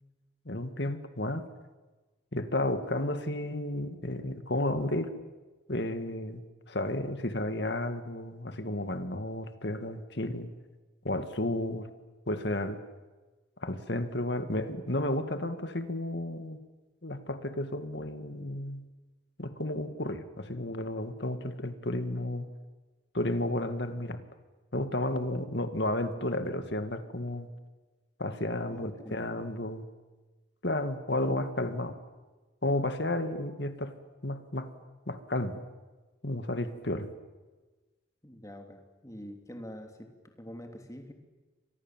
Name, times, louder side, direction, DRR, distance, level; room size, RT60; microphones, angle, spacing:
voice 1, 0.5-1.4 2.3-5.1 5.7-6.4 6.7-10.5 11.0-11.9 12.3-12.8 13.6-16.6 17.0-18.8 19.4-22.5 23.1-24.2 24.7-27.5 28.2-29.8 30.6-32.0 32.6-33.9 34.2-34.7 35.1-35.6 36.2-37.1, left 1 dB, 55° left, 9 dB, 2.1 m, -32 dB
voice 2, 28.7-29.2 38.2-41.1, equal, 15° left, 4 dB, 3.0 m, -45 dB
29.5 x 24.5 x 7.5 m, 1.2 s
head